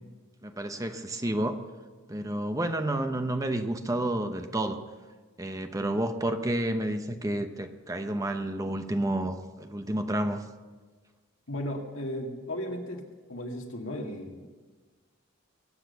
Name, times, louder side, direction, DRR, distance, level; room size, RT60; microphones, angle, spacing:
voice 1, 0.4-1.6 2.1-4.8 5.4-10.4, right 1 dB, 15° right, 7 dB, 0.9 m, -30 dB
voice 2, 11.5-13.0 13.3-14.5, equal, 75° left, 2 dB, 2.1 m, -35 dB
23.0 x 8.6 x 6.9 m, 1.3 s
head